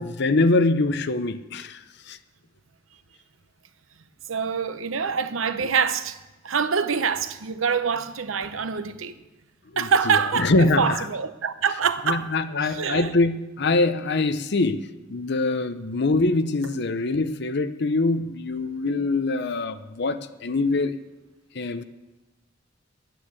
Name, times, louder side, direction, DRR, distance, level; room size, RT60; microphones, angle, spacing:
voice 1, 0.0-1.8 2.1-2.2 9.7-11.1 12.1-14.8 15.1-21.0 21.5-21.8, left 2 dB, 55° left, 0.7 m, -24 dB
voice 2, 4.3-6.2 6.4-9.2 9.8-12.3 12.6-13.1, right 6 dB, 90° right, 0.8 m, -25 dB
11.5 x 9.2 x 8.4 m
head